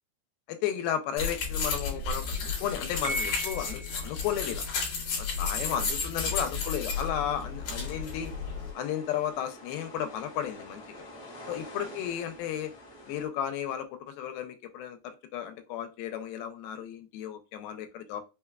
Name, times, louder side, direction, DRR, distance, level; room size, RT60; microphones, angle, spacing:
voice 1, 0.5-4.6 5.2-8.3 8.8-10.8 11.5-12.7 13.1-18.2, left 9 dB, 85° left, 8 dB, 2.3 m, -34 dB
sound 1, 1.2-8.7, left 4 dB, 65° left, 2.3 m, -32 dB
Piano, 3.1-4.2, right 1 dB, 80° right, 2.2 m, -36 dB
sound 2, 6.9-13.3, equal, 50° left, 0.8 m, -48 dB
5.6 x 2.2 x 2.3 m, 0.29 s
omnidirectional pair, 4.2 m